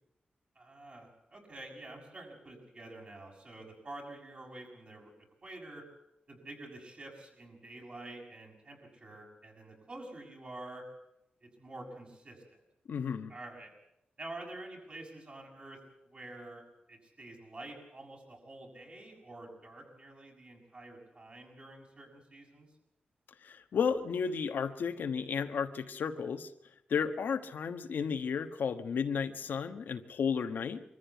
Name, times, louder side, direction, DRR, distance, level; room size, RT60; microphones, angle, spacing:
voice 1, 0.5-5.1 5.4-5.9 6.3-10.8 11.4-12.4 13.3-13.7 14.2-15.8 16.1-16.6 16.9-22.7, right 2 dB, 40° right, 0 dB, 6.7 m, -48 dB
voice 2, 12.9-13.3 23.4-26.5 26.9-30.8, left 6 dB, 85° left, 7 dB, 1.2 m, -33 dB
23.5 x 14.0 x 8.3 m, 0.86 s
wide cardioid pair, 95°, 3 cm